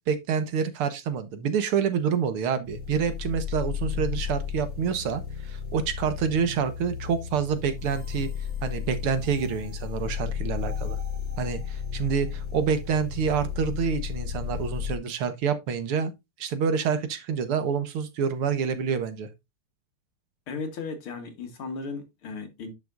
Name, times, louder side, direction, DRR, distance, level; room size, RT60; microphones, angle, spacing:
voice 1, 0.1-8.3 8.6-11.0 11.4-16.1 16.4-19.3, right 6 dB, 80° right, 2.1 m, -27 dB
sound 1, 2.6-15.0, left 7 dB, 40° left, 3.4 m, -33 dB
voice 2, 20.5-22.7, left 4 dB, 75° left, 2.7 m, -36 dB
10.5 x 5.9 x 2.5 m
omnidirectional pair, 2.4 m